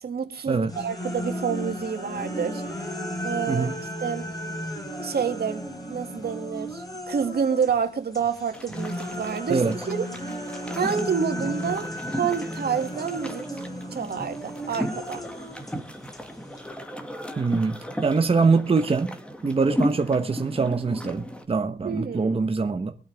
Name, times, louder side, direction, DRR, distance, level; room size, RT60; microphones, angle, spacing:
voice 1, 0.0-2.6 3.2-3.7 4.0-4.2 5.0-5.6 5.9-10.0 10.7-13.6 13.9-15.3 21.8-22.4, right 6 dB, 70° right, 2.2 m, -28 dB
sound 1, 0.7-7.8 8.1-16.7, equal, 20° left, 4.1 m, -34 dB
sound 2, 8.5-21.4, equal, 5° left, 2.0 m, -35 dB
voice 2, 17.4-19.2 19.4-22.9, right 4 dB, 35° right, 1.0 m, -23 dB
23.0 x 8.8 x 3.5 m
wide cardioid pair, 115°, 17 cm